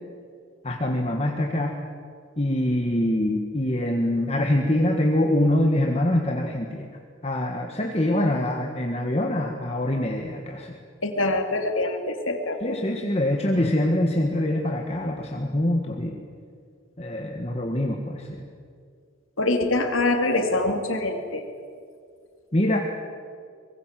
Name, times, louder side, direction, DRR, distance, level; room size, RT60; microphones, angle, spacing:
voice 1, 0.6-1.8 2.4-6.9 7.2-10.7 12.6-16.2 17.0-18.4 22.5-22.8, left 1 dB, 30° left, 2 dB, 1.6 m, -24 dB
voice 2, 11.0-12.8 19.4-21.4, left 2 dB, 85° left, 4 dB, 3.1 m, -24 dB
24.5 x 21.5 x 7.6 m, 2.2 s
head